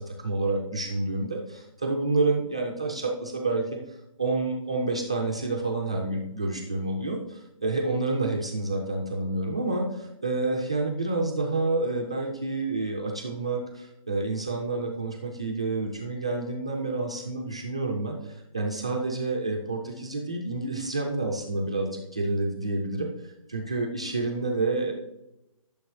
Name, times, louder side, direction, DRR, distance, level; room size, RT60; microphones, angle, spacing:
voice 1, 0.2-24.9, right 2 dB, 10° right, 1 dB, 0.3 m, -29 dB
13.5 x 6.7 x 3.1 m, 0.90 s
hypercardioid pair, 165°, 18 cm